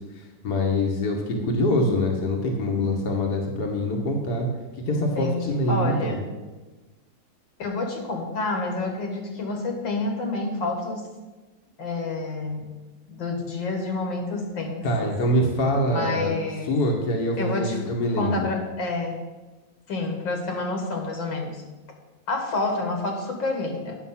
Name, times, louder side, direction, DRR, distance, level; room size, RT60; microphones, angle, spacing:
voice 1, 0.2-4.5 4.9-6.2 14.8-16.3 16.7-18.5, left 1 dB, 60° left, 0 dB, 1.7 m, -24 dB
voice 2, 4.9-6.3 7.6-11.1 11.8-12.6 13.1-15.1 15.9-16.7 17.4-17.8 18.2-19.2 19.9-21.6 22.3-24.0, left 3 dB, 75° left, 2 dB, 2.3 m, -28 dB
9.6 x 7.0 x 5.7 m, 1.2 s
omnidirectional pair, 2.1 m